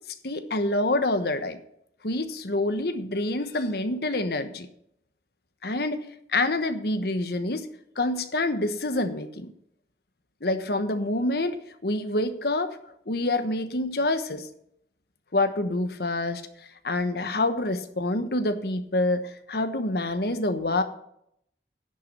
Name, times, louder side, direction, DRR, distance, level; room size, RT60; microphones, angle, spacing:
voice 1, 0.2-1.6 2.0-4.7 5.6-6.0 6.3-7.7 8.0-9.5 10.4-12.8 13.1-14.5 15.3-16.5 16.8-20.8, left 2 dB, 60° left, 9 dB, 1.2 m, -27 dB
10.5 x 7.1 x 6.7 m, 0.72 s
head